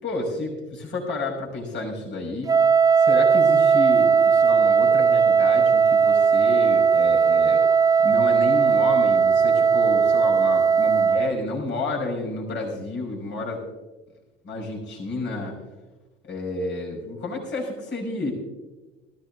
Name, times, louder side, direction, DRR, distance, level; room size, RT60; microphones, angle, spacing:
voice 1, 0.0-2.6 3.0-7.6 8.0-13.6 14.4-15.5 16.2-18.3, left 2 dB, 40° left, 0 dB, 5.5 m, -30 dB
Wind instrument woodwind instrument, 2.5-11.4, right 6 dB, 10° right, 0.7 m, -18 dB
19.0 x 15.0 x 2.6 m, 1.1 s
figure-of-eight pair, 70°, 29 cm